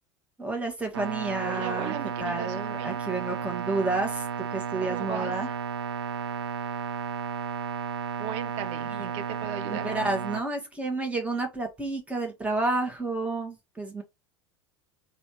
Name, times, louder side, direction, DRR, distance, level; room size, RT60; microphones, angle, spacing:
voice 1, 0.4-1.9 2.2-5.5 8.9-9.1 9.6-14.0, right 2 dB, 10° right, 1.7 m, -30 dB
sound 1, 0.9-10.4, right 7 dB, 70° right, 0.6 m, -33 dB
voice 2, 1.4-3.0 4.8-5.3 8.2-9.9, right 9 dB, 50° right, 1.0 m, -37 dB
4.1 x 2.7 x 4.6 m
figure-of-eight pair, 75°, 14 cm